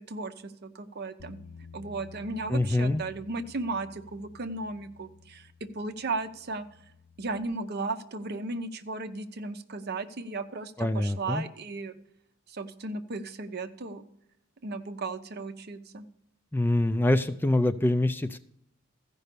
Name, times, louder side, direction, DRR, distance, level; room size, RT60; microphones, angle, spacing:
voice 1, 0.0-1.4 1.7-6.7 7.2-12.0 12.5-14.0 14.6-16.1, right 3 dB, 50° right, 10 dB, 0.7 m, -35 dB
Bass guitar, 1.2-7.4, left 5 dB, 90° left, 0.7 m, -52 dB
voice 2, 2.5-3.0 10.8-11.4 16.5-18.4, left 1 dB, 10° left, 11 dB, 0.3 m, -25 dB
14.5 x 5.4 x 6.7 m, 0.77 s
head